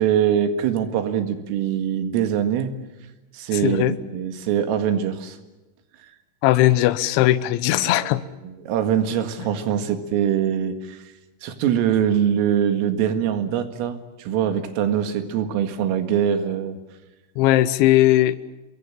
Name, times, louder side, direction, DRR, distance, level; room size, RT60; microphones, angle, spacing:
voice 1, 0.0-2.7 3.3-5.4 7.8-8.1 8.4-11.0 11.4-16.8, right 9 dB, 90° right, 8 dB, 4.5 m, -23 dB
voice 2, 3.6-4.0 6.4-8.2 17.4-18.4, left 14 dB, 75° left, 14 dB, 3.1 m, -18 dB
27.5 x 22.5 x 7.4 m, 1.1 s
omnidirectional pair, 5.7 m